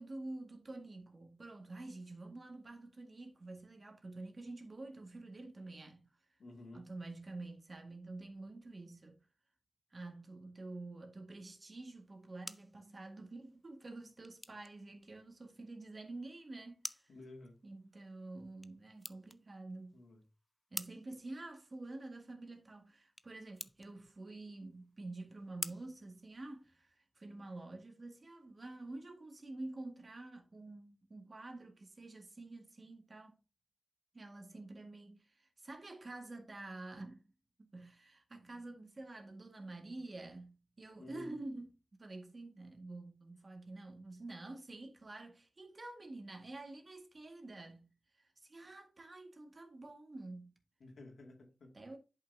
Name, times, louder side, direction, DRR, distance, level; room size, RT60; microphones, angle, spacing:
voice 1, 0.0-6.1 6.7-9.2 9.9-17.1 17.6-20.0 20.7-33.4 34.1-37.3 37.6-41.7 42.0-47.9 48.2-50.5 51.7-52.0, right 2 dB, 40° right, 1.8 m, -48 dB
voice 2, 6.4-6.9 17.1-17.6 19.9-20.2 41.0-41.4 50.8-51.8, left 2 dB, 80° left, 2.3 m, -52 dB
sound 1, 12.0-27.0, equal, 5° left, 0.4 m, -52 dB
10.5 x 5.6 x 2.8 m
wide cardioid pair, 100°, 0 cm